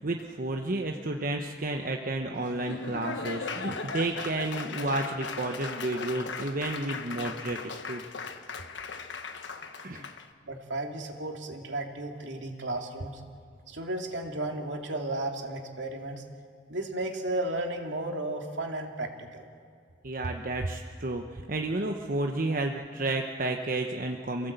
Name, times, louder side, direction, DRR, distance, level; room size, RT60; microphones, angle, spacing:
voice 1, 0.0-8.0 9.8-10.1 20.0-24.5, right 2 dB, 50° right, 3 dB, 1.0 m, -31 dB
Laughter / Applause, 2.4-10.3, left 4 dB, 75° left, 1.3 m, -38 dB
voice 2, 10.4-13.2 13.7-16.2 16.7-19.5, right 1 dB, 75° right, 2 dB, 2.7 m, -34 dB
28.0 x 16.5 x 8.1 m, 2.2 s
head